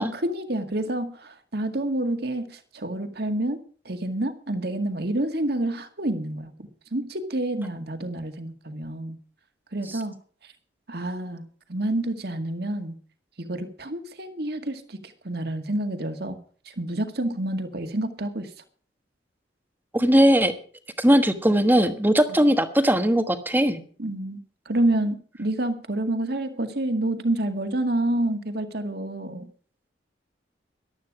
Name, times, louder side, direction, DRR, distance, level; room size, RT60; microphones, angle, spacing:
voice 1, 0.0-3.6 3.9-9.2 9.7-10.1 10.4-10.5 10.9-12.9 13.4-15.0 15.2-16.4 16.7-18.5 24.0-24.4 24.7-29.5, right 1 dB, 60° right, 7 dB, 1.9 m, -28 dB
voice 2, 19.9-20.5 21.0-23.8, equal, 10° right, 8 dB, 1.3 m, -19 dB
15.0 x 12.0 x 4.9 m, 0.43 s
head